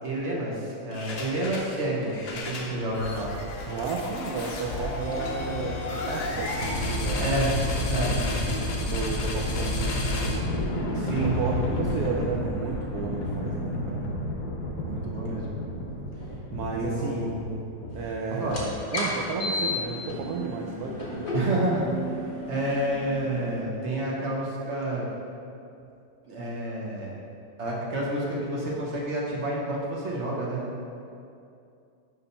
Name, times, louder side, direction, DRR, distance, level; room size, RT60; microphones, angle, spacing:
voice 1, 0.0-3.3 7.2-7.5 7.8-8.2 10.9-11.4 14.8-15.6 16.7-17.7 18.3-18.6 21.3-22.0 22.5-25.1 26.3-27.2 27.6-30.6, right 1 dB, 55° right, -4 dB, 0.7 m, -29 dB
sound 1, 0.9-1.7 2.0-19.0, left 1 dB, 65° left, 1.2 m, -31 dB
voice 2, 3.7-5.8 6.1-7.4 7.8-10.5 11.2-14.1 16.5-17.3 17.9-21.3, right 4 dB, 85° right, 0 dB, 0.8 m, -33 dB
sound 2, 18.4-23.6, left 2 dB, 35° left, 0.9 m, -33 dB
5.9 x 3.7 x 5.5 m, 2.6 s
omnidirectional pair, 2.2 m